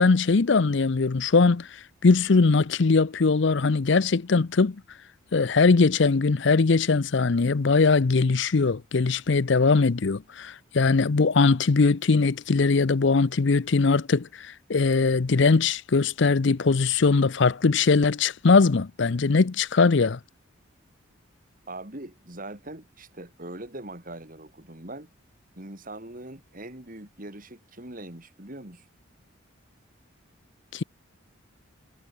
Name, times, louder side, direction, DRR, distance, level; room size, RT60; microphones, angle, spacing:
voice 1, 0.0-1.7 2.0-4.8 5.3-14.3 14.7-20.2 30.7-30.8, left 4 dB, 60° left, 0.6 m, -21 dB
voice 2, 21.7-25.1 25.5-28.9, right 1 dB, 40° right, 3.3 m, -41 dB
head